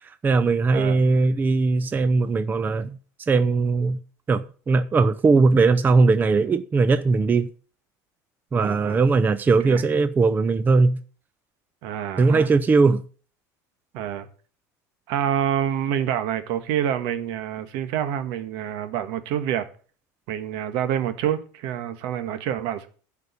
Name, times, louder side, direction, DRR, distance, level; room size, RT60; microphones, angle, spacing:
voice 1, 0.0-4.0 4.3-7.5 8.5-11.0 12.2-13.0, right 4 dB, 20° right, 0.6 m, -20 dB
voice 2, 0.7-1.0 8.5-9.0 9.6-9.8 11.8-12.5 13.9-14.3 15.1-19.7 20.3-22.9, right 10 dB, 75° right, 1.6 m, -27 dB
11.0 x 5.2 x 8.3 m
cardioid pair, 125°, 9 cm